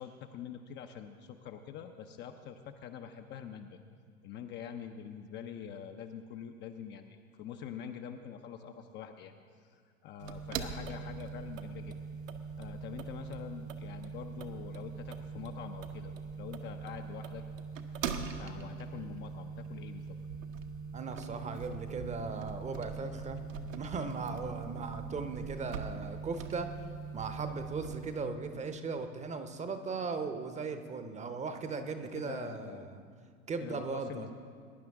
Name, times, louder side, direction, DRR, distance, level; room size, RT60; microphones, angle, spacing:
voice 1, 0.0-3.8 4.2-9.3 9.6-12.0 12.6-17.4 18.0-20.2 32.2-32.9 33.6-34.3, left 8 dB, 25° left, 6 dB, 0.6 m, -45 dB
sound 1, 10.2-28.2, right 5 dB, 65° right, 1.2 m, -41 dB
voice 2, 20.9-23.4 23.7-26.7 27.1-33.0 33.5-34.3, right 4 dB, 15° right, 8 dB, 0.9 m, -38 dB
21.5 x 10.5 x 3.6 m, 2.1 s
figure-of-eight pair, 90°, 42 cm